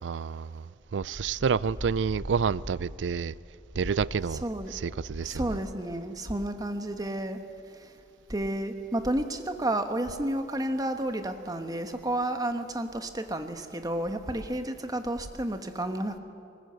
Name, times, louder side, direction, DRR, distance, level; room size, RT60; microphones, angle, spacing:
voice 1, 0.0-3.4 3.8-4.4 4.7-5.6, right 6 dB, 80° right, 0.4 m, -29 dB
sound 1, 0.8-5.2 5.5-5.8, equal, 45° left, 5.1 m, -42 dB
voice 2, 4.4-4.7 5.2-7.4 7.7-8.0 8.3-16.2, right 1 dB, 20° right, 1.2 m, -31 dB
20.0 x 20.0 x 8.0 m
head